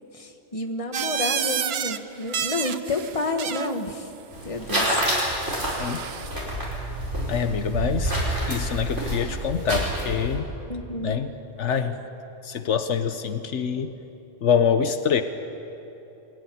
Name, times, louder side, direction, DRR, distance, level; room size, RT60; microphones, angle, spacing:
voice 1, 0.1-4.1 4.4-4.9 5.5-5.8 10.7-11.2, left 2 dB, 30° left, 5 dB, 1.5 m, -30 dB
sound 1, 0.9-2.0 2.3-3.8 4.8-6.3, right 8 dB, 60° right, 0.9 m, -30 dB
sound 2, 4.3-10.4, right 1 dB, 75° right, 5.8 m, -28 dB
voice 2, 7.3-10.5 11.0-12.0 12.4-14.0 14.4-15.2, left 7 dB, 75° left, 9 dB, 1.2 m, -25 dB
23.0 x 16.5 x 9.9 m, 3.0 s
omnidirectional pair, 1.2 m